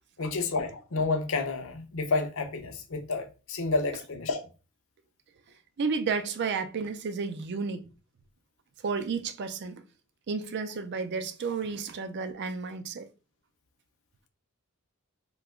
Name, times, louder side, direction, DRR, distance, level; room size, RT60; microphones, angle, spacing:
voice 1, 0.2-4.4, left 3 dB, 65° left, 0.6 m, -30 dB
voice 2, 5.8-7.9 8.8-9.8 10.3-13.1, right 5 dB, 50° right, 0.4 m, -32 dB
2.9 x 2.2 x 3.6 m
head